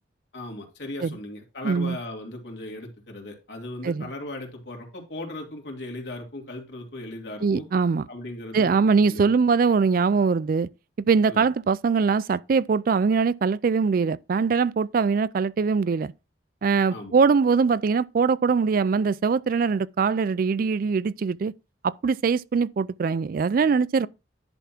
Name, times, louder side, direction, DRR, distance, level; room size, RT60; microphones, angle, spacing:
voice 1, 0.3-7.6 8.1-9.3 11.3-11.5 16.9-17.1, left 1 dB, 70° left, 2.8 m, -37 dB
voice 2, 1.6-2.0 3.8-4.1 7.4-8.1 8.5-10.7 11.0-16.1 16.6-21.5 21.8-24.1, right 5 dB, 50° right, 0.3 m, -22 dB
10.5 x 3.6 x 5.9 m
head